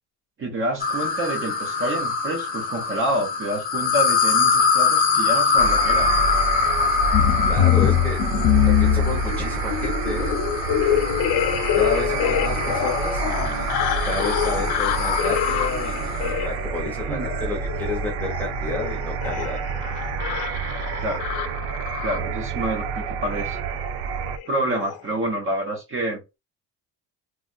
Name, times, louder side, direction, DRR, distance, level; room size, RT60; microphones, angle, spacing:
voice 1, 0.4-6.2 16.9-17.5 21.0-21.3 22.0-23.6 24.5-26.4, right 1 dB, 30° right, 1.0 m, -28 dB
sound 1, 0.8-16.4, left 5 dB, 25° left, 0.7 m, -24 dB
sound 2, 5.6-24.4, right 6 dB, 75° right, 0.6 m, -29 dB
sound 3, 7.1-22.5 23.2-23.5 23.8-24.0 24.3-24.4 24.7-25.0, left 10 dB, 70° left, 0.6 m, -25 dB
voice 2, 7.5-8.2 8.7-10.4 11.8-13.8 14.0-19.6, left 2 dB, 5° left, 1.0 m, -31 dB
3.3 x 2.5 x 2.4 m
cardioid pair, 175°, 40 cm